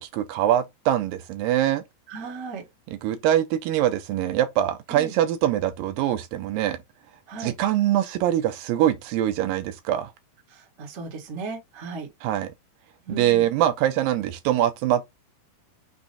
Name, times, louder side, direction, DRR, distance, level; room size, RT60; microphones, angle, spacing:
voice 1, 0.0-1.8 3.0-6.8 7.4-10.1 12.2-12.5 13.1-15.1, right 12 dB, 80° right, 2.1 m, -23 dB
voice 2, 2.1-2.7 4.9-5.1 7.3-7.5 10.5-12.1 13.0-13.5, right 4 dB, 55° right, 0.8 m, -36 dB
6.0 x 2.1 x 4.0 m
omnidirectional pair, 4.3 m